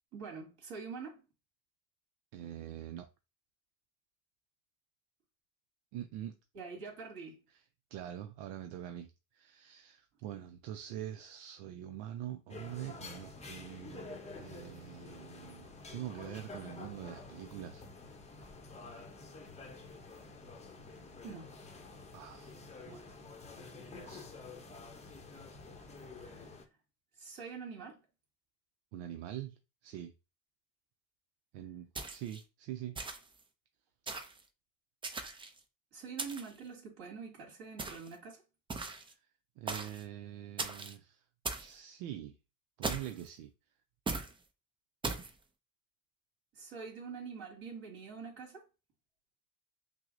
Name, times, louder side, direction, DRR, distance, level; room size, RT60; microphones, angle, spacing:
voice 1, 0.1-1.2 6.5-7.4 21.2-21.6 26.2-26.5 27.2-28.0 35.9-38.4 46.5-48.6, right 5 dB, 55° right, 2.1 m, -45 dB
voice 2, 2.3-3.1 5.9-6.4 7.5-7.6 7.9-17.8 22.1-22.6 22.9-23.2 23.9-24.3 28.9-30.1 31.5-33.0 39.1-39.2 39.6-41.2 41.5-42.4 42.8-43.5, right 11 dB, 80° right, 0.5 m, -44 dB
sound 1, 12.5-26.7, left 3 dB, 15° left, 0.7 m, -49 dB
sound 2, 31.9-32.4 32.9-33.4 34.1-34.4 35.0-35.6 36.2-36.6 37.8-38.1 38.7-39.1 39.7-40.0 40.6-40.9 41.4-41.7 42.8-43.3 44.1-44.3 45.0-45.3, right 3 dB, 15° right, 0.3 m, -39 dB
5.8 x 2.0 x 2.5 m
supercardioid pair, 95°, 43 cm